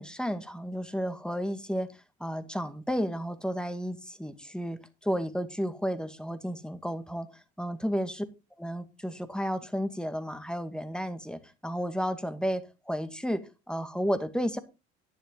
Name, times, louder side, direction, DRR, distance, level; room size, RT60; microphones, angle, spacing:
voice 1, 0.0-1.9 2.2-7.3 7.6-8.2 8.6-14.6, equal, ahead, 11 dB, 2.1 m, -32 dB
11.0 x 10.5 x 4.0 m, 0.28 s
hypercardioid pair, 65°, 33 cm